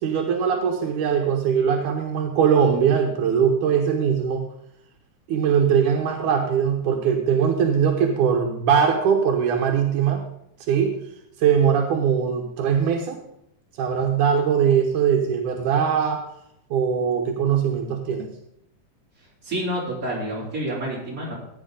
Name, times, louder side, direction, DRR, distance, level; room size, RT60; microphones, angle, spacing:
voice 1, 0.0-4.4 5.3-10.2 10.7-11.0 11.4-13.2 13.8-16.2 16.7-18.3, right 7 dB, 80° right, 3 dB, 2.5 m, -21 dB
voice 2, 19.4-21.3, right 1 dB, 25° right, -5 dB, 4.5 m, -28 dB
16.0 x 9.3 x 3.8 m, 0.78 s
omnidirectional pair, 3.5 m